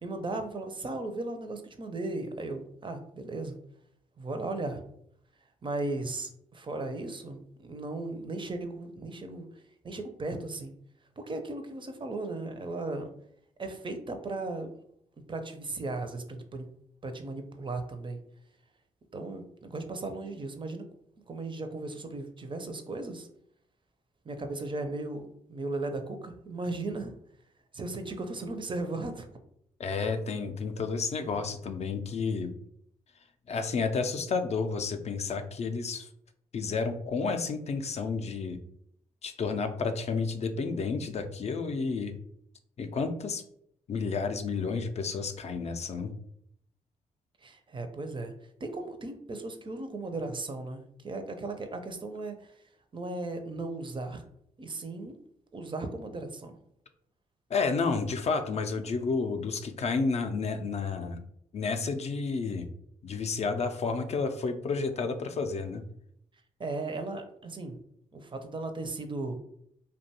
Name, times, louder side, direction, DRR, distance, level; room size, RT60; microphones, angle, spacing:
voice 1, 0.0-3.6 4.2-4.8 5.6-9.5 9.8-10.7 11.2-13.1 13.6-14.8 15.3-16.7 17.0-18.2 19.1-20.8 21.3-23.3 24.3-27.1 27.7-29.3 47.4-48.3 48.6-52.5 52.9-54.2 54.6-55.1 55.5-56.6 66.6-67.8 68.1-69.4, right 2 dB, 30° right, 6 dB, 0.5 m, -36 dB
voice 2, 29.8-32.5 33.5-36.1 36.5-38.6 39.2-42.1 42.8-43.4 43.9-46.1 57.5-61.2 61.5-62.7 63.0-65.8, left 4 dB, 45° left, 7 dB, 0.4 m, -31 dB
2.5 x 2.2 x 2.8 m, 0.72 s
supercardioid pair, 45°, 15 cm